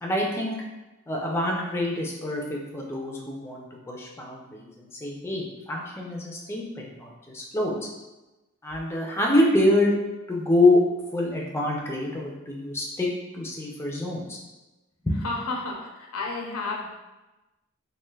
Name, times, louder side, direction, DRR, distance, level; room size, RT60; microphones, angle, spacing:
voice 1, 0.0-0.5 1.1-7.7 8.6-9.9 10.3-10.8 11.1-13.1 13.3-14.4 15.0-15.3, left 1 dB, 10° left, -2 dB, 0.3 m, -26 dB
voice 2, 15.2-17.0, left 3 dB, 85° left, -1 dB, 0.6 m, -32 dB
3.2 x 2.4 x 2.2 m, 1.1 s
head